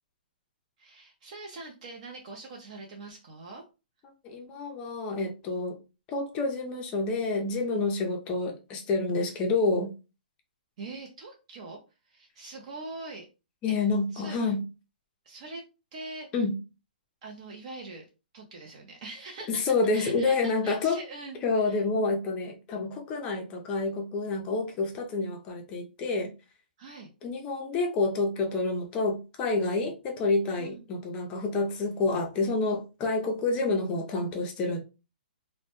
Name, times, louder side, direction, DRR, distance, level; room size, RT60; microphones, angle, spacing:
voice 1, 0.8-3.6 10.8-11.8 12.1-13.3 14.1-14.4 15.2-15.6 15.9-16.3 17.2-18.0 18.3-19.6 19.9-21.4 21.6-21.8 26.8-27.1 30.6-30.8, right 3 dB, 45° right, 0.5 m, -43 dB
voice 2, 4.2-5.8 6.1-9.9 13.6-14.6 16.3-16.6 19.5-21.0 21.4-26.3 27.2-34.8, left 3 dB, 20° left, 0.4 m, -28 dB
2.1 x 2.0 x 2.9 m
hypercardioid pair, 160°, 5 cm